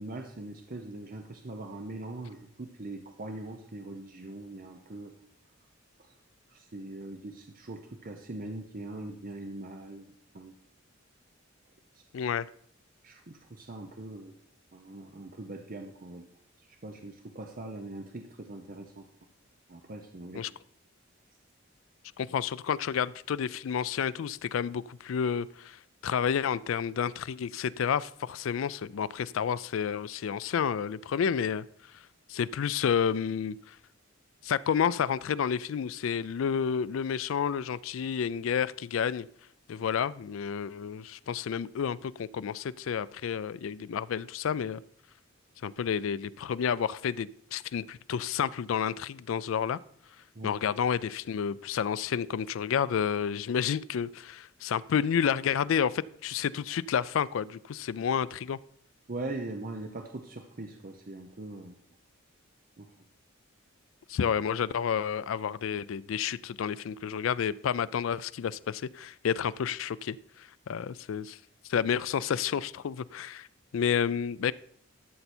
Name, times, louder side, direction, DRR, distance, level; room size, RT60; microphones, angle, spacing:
voice 1, 0.0-5.1 6.5-10.5 11.9-12.0 13.0-14.3 14.7-16.3 16.8-19.1 19.7-20.5 50.3-50.6 59.1-61.7 62.8-62.9, right 2 dB, 45° right, 0.8 m, -41 dB
voice 2, 12.1-12.5 20.3-20.5 22.2-31.7 32.3-33.8 34.4-39.3 39.7-44.8 45.6-49.8 50.4-58.6 64.1-71.4 71.7-73.5 73.7-74.5, left 7 dB, 75° left, 0.4 m, -30 dB
12.5 x 6.7 x 4.3 m
head